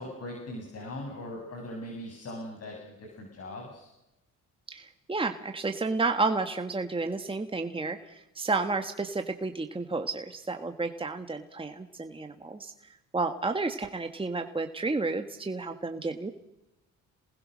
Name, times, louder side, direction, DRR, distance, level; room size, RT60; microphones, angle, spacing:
voice 1, 0.0-3.9, left 1 dB, 55° left, 0 dB, 7.4 m, -40 dB
voice 2, 4.7-12.7 13.1-16.3, right 3 dB, 15° right, 6 dB, 1.7 m, -31 dB
28.0 x 20.0 x 6.5 m, 0.91 s
cardioid pair, 90°, 30 cm